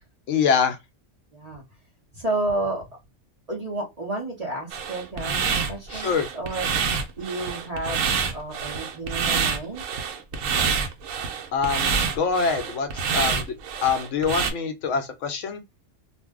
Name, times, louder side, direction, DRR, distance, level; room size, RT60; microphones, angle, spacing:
voice 1, 0.3-0.8 5.9-6.3 11.5-13.5 13.8-15.6, left 6 dB, 70° left, 0.9 m, -24 dB
voice 2, 1.3-1.6 2.1-2.8 3.5-6.9 7.1-8.1 8.3-9.9, right 2 dB, 35° right, 0.7 m, -31 dB
sound 1, 4.7-14.5, right 6 dB, 80° right, 1.0 m, -27 dB
2.6 x 2.1 x 3.4 m
omnidirectional pair, 1.4 m